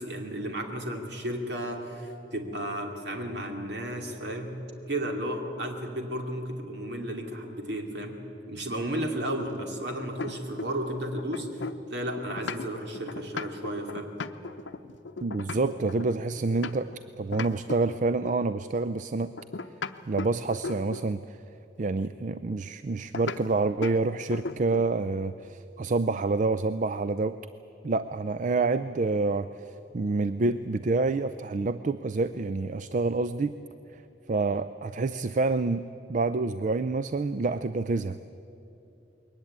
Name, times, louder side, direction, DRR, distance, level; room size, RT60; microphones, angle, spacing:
voice 1, 0.0-4.6 4.9-8.2 8.5-14.1, right 1 dB, 60° right, 3 dB, 2.6 m, -33 dB
sound 1, 8.9-10.9 11.2-17.0 17.3-18.5 19.4-21.2 23.1-23.4 23.8-24.0 24.3-25.0, left 4 dB, 75° left, 0.7 m, -37 dB
voice 2, 15.2-19.3 20.1-21.4 21.8-27.4 27.8-33.5 33.9-34.0 34.3-38.2, right 3 dB, 40° right, 13 dB, 0.4 m, -28 dB
21.5 x 19.0 x 8.7 m, 2.9 s
head